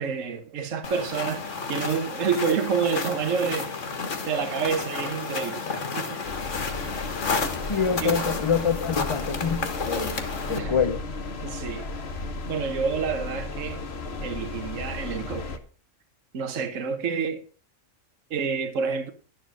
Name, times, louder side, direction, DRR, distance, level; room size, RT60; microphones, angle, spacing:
voice 1, 0.0-3.7 4.3-5.6 6.0-6.2 8.0-8.2 10.5-10.7 11.4-11.9 12.5-13.8 14.2-15.6 16.3-17.4 18.3-19.1, right 6 dB, 75° right, 1.5 m, -28 dB
sound 1, 0.8-10.6, left 4 dB, 70° left, 1.8 m, -31 dB
sound 2, 6.2-15.6, left 3 dB, 55° left, 1.4 m, -34 dB
voice 2, 7.7-10.2 10.5-11.1, left 6 dB, 35° left, 0.5 m, -26 dB
11.5 x 7.3 x 6.1 m
omnidirectional pair, 1.3 m